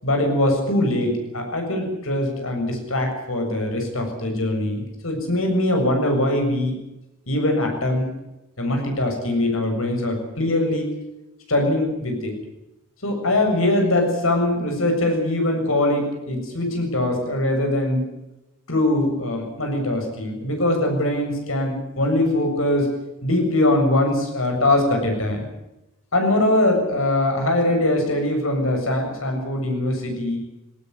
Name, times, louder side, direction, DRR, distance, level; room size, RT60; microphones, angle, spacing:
voice 1, 0.0-6.8 7.3-8.1 8.6-10.9 11.5-12.3 13.0-18.1 18.7-22.9 23.2-25.4 26.1-30.4, left 1 dB, 85° left, 3 dB, 7.4 m, -22 dB
19.0 x 18.0 x 9.6 m, 0.95 s
head